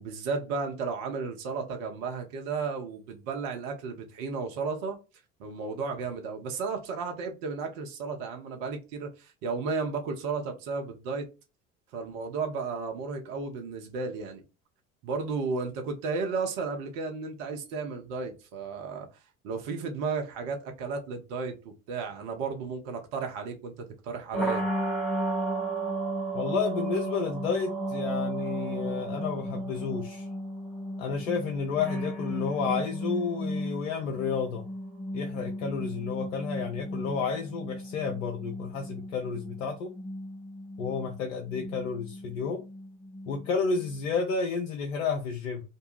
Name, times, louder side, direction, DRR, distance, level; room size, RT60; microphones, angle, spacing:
voice 1, 0.0-5.0 5.4-11.3 11.9-14.4 15.0-19.1 19.4-24.7, right 4 dB, 65° right, 0.8 m, -33 dB
sound 1, 24.3-44.2, right 1 dB, ahead, 0.9 m, -34 dB
voice 2, 26.3-30.3 31.0-34.7 35.1-39.9 40.8-42.6 43.3-45.6, left 5 dB, 80° left, 0.6 m, -31 dB
2.6 x 2.2 x 3.0 m
hypercardioid pair, 65°, 38 cm